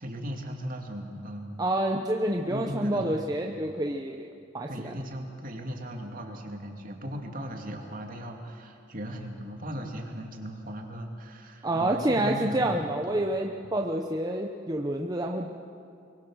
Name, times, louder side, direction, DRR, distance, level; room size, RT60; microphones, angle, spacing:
voice 1, 0.0-1.6 2.5-3.6 4.7-13.3 13.6-13.7, equal, 45° right, 2 dB, 2.6 m, -38 dB
voice 2, 1.6-4.3 4.5-4.9 11.6-15.5, right 1 dB, 20° right, 1 dB, 0.9 m, -28 dB
23.5 x 23.5 x 6.4 m, 2.4 s
head